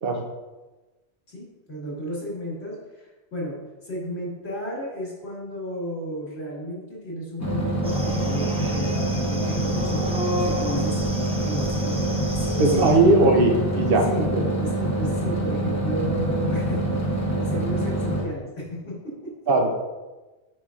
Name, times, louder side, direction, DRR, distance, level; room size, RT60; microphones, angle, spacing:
voice 1, 1.3-13.3 14.0-14.3 14.6-19.3, equal, 70° left, -5 dB, 2.1 m, -33 dB
sound 1, 7.4-18.2, right 1 dB, 15° left, 0.8 m, -25 dB
sound 2, 7.8-12.9, equal, 5° right, 0.5 m, -32 dB
voice 2, 12.6-14.0 14.3-14.4 19.5-19.8, right 2 dB, 60° right, 3 dB, 1.0 m, -19 dB
6.8 x 5.6 x 2.5 m, 1.2 s
omnidirectional pair, 1.1 m